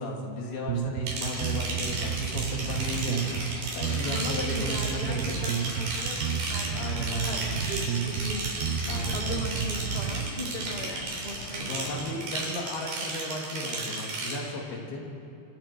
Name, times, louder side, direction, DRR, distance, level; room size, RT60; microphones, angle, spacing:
voice 1, 0.0-3.4 3.7-5.5 6.7-7.4 8.9-9.5 11.6-15.0, left 1 dB, 90° left, -1 dB, 4.7 m, -35 dB
sound 1, 0.7-10.3, right 8 dB, 90° right, 3.1 m, -31 dB
sound 2, 1.1-14.4, right 2 dB, 70° right, 5.7 m, -34 dB
sound 3, 1.4-12.0, left 1 dB, 20° left, 2.3 m, -43 dB
voice 2, 4.0-12.2, equal, 30° right, -1 dB, 1.1 m, -39 dB
24.5 x 23.5 x 4.5 m, 2.8 s
omnidirectional pair, 4.3 m